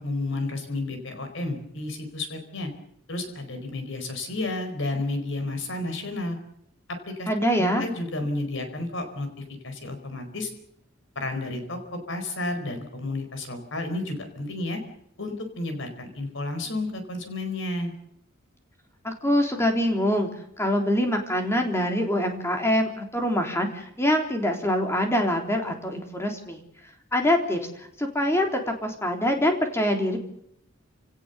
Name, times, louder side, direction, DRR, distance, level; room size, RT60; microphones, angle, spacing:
voice 1, 0.0-2.7 3.1-6.4 6.9-7.3 7.6-9.3 9.6-10.5 11.1-14.8 15.2-17.9, left 2 dB, 65° left, 7 dB, 4.6 m, -31 dB
voice 2, 7.3-7.8 19.0-20.3 20.6-26.6 27.1-30.2, left 1 dB, 15° left, 3 dB, 3.4 m, -24 dB
28.5 x 17.5 x 6.9 m, 0.73 s
head